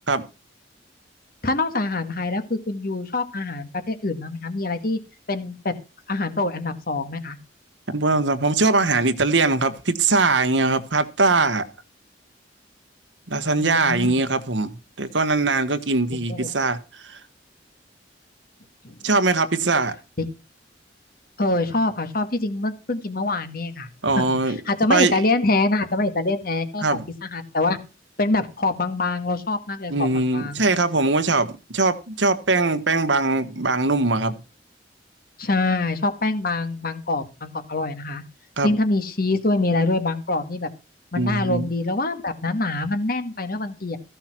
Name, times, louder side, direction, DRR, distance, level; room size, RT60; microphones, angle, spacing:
voice 1, 1.4-5.0 5.3-5.7 6.1-7.4 13.6-14.1 16.3-16.5 18.8-18.9 20.2-20.3 21.4-23.9 24.2-27.8 28.2-30.6 35.4-38.2 38.6-40.7 41.1-44.0, left 2 dB, 55° left, 1.8 m, -25 dB
voice 2, 7.9-11.6 13.3-16.8 17.1-17.2 19.0-19.9 24.0-24.6 24.9-25.2 26.8-27.0 29.9-34.3 38.6-38.7 41.2-41.7, right 3 dB, 90° right, 1.4 m, -21 dB
15.0 x 5.6 x 6.0 m
head